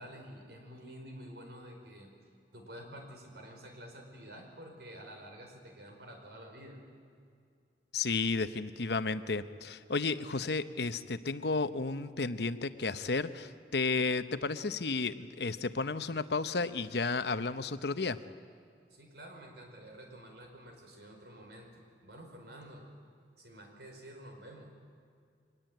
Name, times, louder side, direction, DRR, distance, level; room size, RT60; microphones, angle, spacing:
voice 1, 0.0-2.1 2.5-6.8 18.9-22.8 23.4-24.7, equal, 70° right, 3 dB, 4.9 m, -49 dB
voice 2, 7.9-18.2, left 4 dB, 70° left, 12 dB, 0.9 m, -32 dB
24.0 x 20.0 x 9.0 m, 2.3 s
head